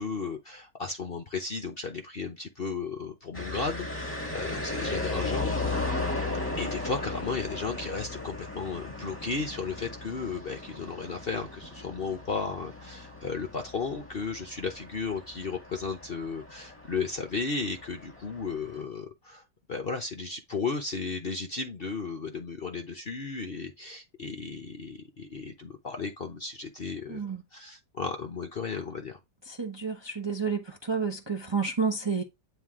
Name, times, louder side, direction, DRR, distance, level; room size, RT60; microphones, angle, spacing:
voice 1, 0.0-6.0 6.6-19.4 19.7-29.2, left 4 dB, 45° left, 0.8 m, -34 dB
sound 1, 3.3-18.8, left 2 dB, 10° left, 1.6 m, -36 dB
voice 2, 27.1-27.4 29.5-32.2, right 5 dB, 20° right, 0.7 m, -30 dB
9.3 x 3.3 x 3.6 m
omnidirectional pair, 1.8 m